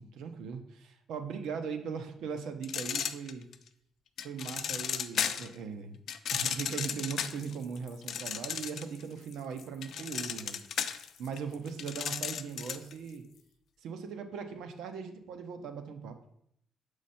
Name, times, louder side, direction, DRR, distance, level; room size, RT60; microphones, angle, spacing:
voice 1, 0.0-3.5 4.2-6.0 6.3-10.6 11.2-13.2 13.8-16.2, right 6 dB, 80° right, 7 dB, 0.8 m, -39 dB
sound 1, 2.6-3.7 4.2-5.5 6.1-9.0 9.3-12.9, left 8 dB, 70° left, 0.5 m, -34 dB
6.5 x 4.9 x 4.2 m, 0.73 s
cardioid pair, 90°, 0 cm